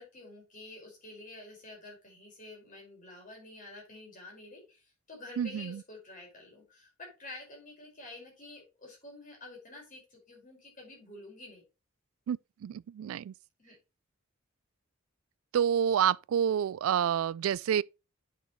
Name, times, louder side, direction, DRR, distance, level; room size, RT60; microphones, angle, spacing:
voice 1, 0.0-11.6 13.6-13.8, left 2 dB, 40° left, 5.3 m, -49 dB
voice 2, 5.4-5.8 12.3-13.3 15.5-17.8, right 9 dB, 70° right, 0.3 m, -28 dB
9.2 x 6.4 x 3.1 m
head